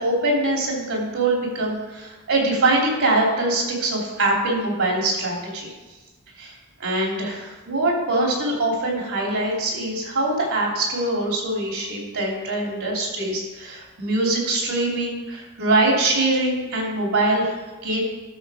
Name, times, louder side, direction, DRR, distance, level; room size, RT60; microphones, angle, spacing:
voice 1, 0.0-5.7 6.4-18.0, right 2 dB, 85° right, -1 dB, 3.2 m, -23 dB
13.0 x 6.7 x 5.0 m, 1.2 s
head